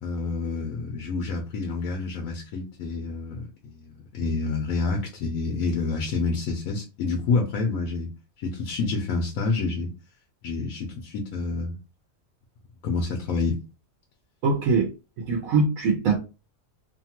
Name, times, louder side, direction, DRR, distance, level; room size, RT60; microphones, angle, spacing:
voice 1, 0.0-8.1 8.4-9.9 10.4-11.8 12.8-13.6, left 3 dB, 75° left, 1.0 m, -28 dB
voice 2, 14.4-14.9 15.2-16.2, right 4 dB, 75° right, 1.1 m, -22 dB
2.8 x 2.3 x 2.8 m
omnidirectional pair, 1.5 m